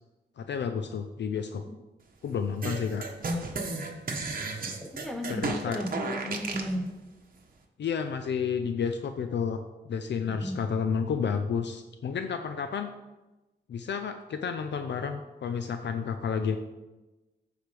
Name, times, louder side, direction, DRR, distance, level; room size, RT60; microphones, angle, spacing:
voice 1, 0.4-1.6 2.2-3.0 5.3-5.8 7.8-9.6 9.8-12.9 13.7-16.6, left 6 dB, 70° left, 7 dB, 0.5 m, -31 dB
sound 1, 2.6-6.7, right 3 dB, 50° right, 1.1 m, -33 dB
voice 2, 4.8-6.9 10.4-10.6, equal, ahead, 3 dB, 0.6 m, -34 dB
14.5 x 4.9 x 3.3 m, 1.1 s
wide cardioid pair, 145°, 19 cm